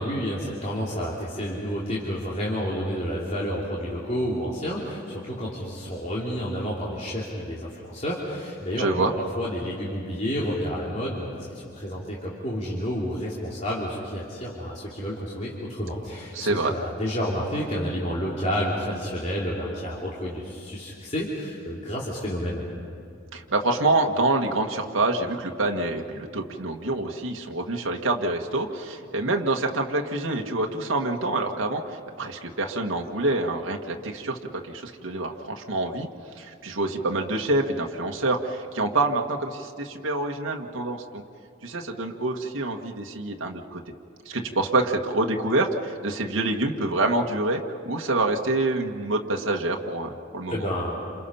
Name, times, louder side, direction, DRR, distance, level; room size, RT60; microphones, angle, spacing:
voice 1, 0.0-22.6 50.5-51.0, equal, 35° left, -6 dB, 3.3 m, -30 dB
voice 2, 8.8-9.1 16.3-16.7 23.3-34.4 34.7-36.1 36.4-41.2 41.6-43.8 44.3-50.7, right 2 dB, 80° right, 1 dB, 1.7 m, -26 dB
29.0 x 27.5 x 5.7 m, 2.4 s
head